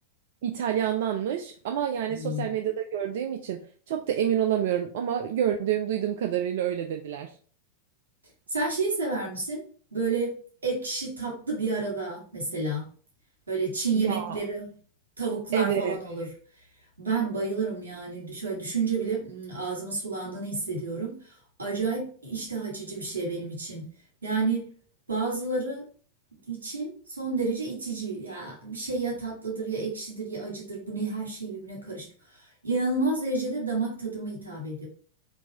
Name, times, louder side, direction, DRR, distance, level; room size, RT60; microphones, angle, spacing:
voice 1, 0.4-7.3 14.0-14.3 15.5-16.0, right 9 dB, 55° right, 5 dB, 0.3 m, -28 dB
voice 2, 2.1-2.5 8.5-9.6 9.9-10.4 10.6-12.9 13.5-14.6 15.2-16.3 17.0-21.3 21.6-23.9 24.2-24.6 25.1-25.8 26.5-32.1 32.3-34.9, right 3 dB, 75° right, -1 dB, 1.5 m, -30 dB
4.5 x 2.7 x 2.7 m, 0.43 s
figure-of-eight pair, 90°, 0 cm